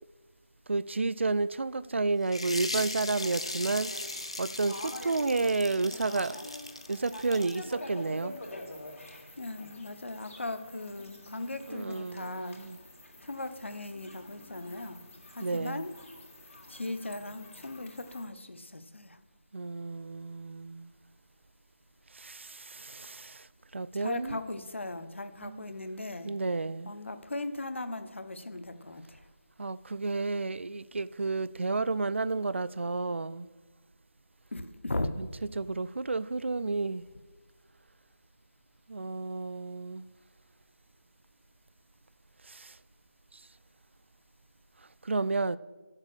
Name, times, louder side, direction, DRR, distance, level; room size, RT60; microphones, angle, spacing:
voice 1, 0.7-3.9 4.4-6.5 6.9-8.3 11.7-12.8 15.4-15.9 19.5-20.9 22.1-23.5 23.7-24.4 25.4-25.6 26.2-26.9 29.6-33.5 35.2-35.3 35.5-37.0 38.9-40.0 42.4-42.8 43.3-43.4 45.0-45.6, right 3 dB, 60° right, 0.3 m, -31 dB
sound 1, 2.3-7.7, left 2 dB, 25° left, 0.5 m, -38 dB
sound 2, 3.2-18.2, left 1 dB, 85° left, 2.7 m, -47 dB
voice 2, 9.4-12.5 13.2-15.0 15.3-15.9 16.7-19.2 23.9-26.3 26.8-29.2 34.5-35.2, left 2 dB, 65° left, 1.0 m, -38 dB
9.8 x 7.3 x 6.6 m
figure-of-eight pair, 180°, 7 cm